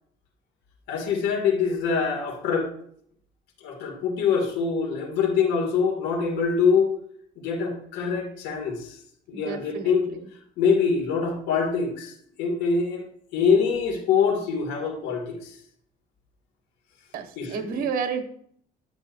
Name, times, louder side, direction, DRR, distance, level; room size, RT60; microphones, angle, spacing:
voice 1, 0.9-2.7 3.6-6.9 7.4-9.0 9.3-10.0 10.6-13.1 13.3-15.5 17.4-17.5, left 5 dB, 85° left, 1 dB, 2.5 m, -24 dB
voice 2, 9.3-10.3 17.1-18.2, right 6 dB, 60° right, 5 dB, 1.5 m, -31 dB
10.5 x 8.7 x 2.7 m, 0.64 s
cardioid pair, 110°, 17 cm